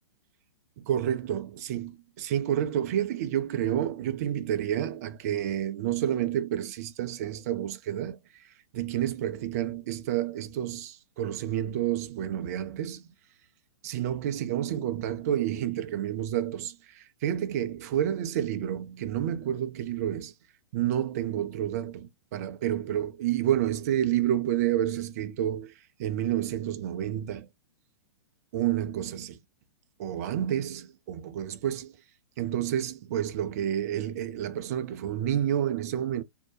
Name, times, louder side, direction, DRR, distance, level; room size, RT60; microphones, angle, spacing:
voice 1, 0.8-1.9 2.2-13.1 13.8-20.3 20.7-27.5 28.5-29.4 30.0-31.9 32.4-36.2, right 11 dB, 35° right, 0.4 m, -29 dB
2.6 x 2.1 x 2.9 m
figure-of-eight pair, 110°, 14 cm